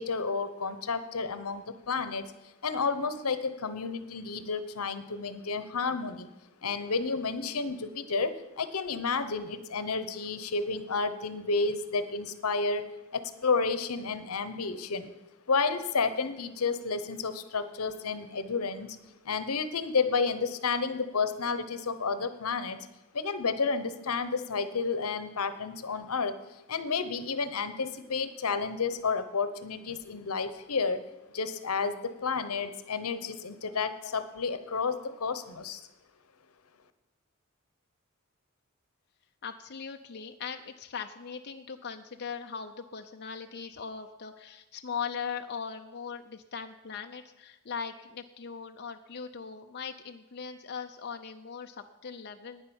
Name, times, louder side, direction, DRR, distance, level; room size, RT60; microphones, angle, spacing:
voice 1, 0.0-2.2 2.6-6.3 6.6-12.9 13.1-15.1 15.5-19.0 19.2-22.8 23.1-31.0 31.3-35.8, left 4 dB, 85° left, 12 dB, 0.9 m, -31 dB
voice 2, 39.4-52.7, left 6 dB, 50° left, 5 dB, 0.6 m, -39 dB
10.0 x 9.6 x 7.1 m, 1.0 s
head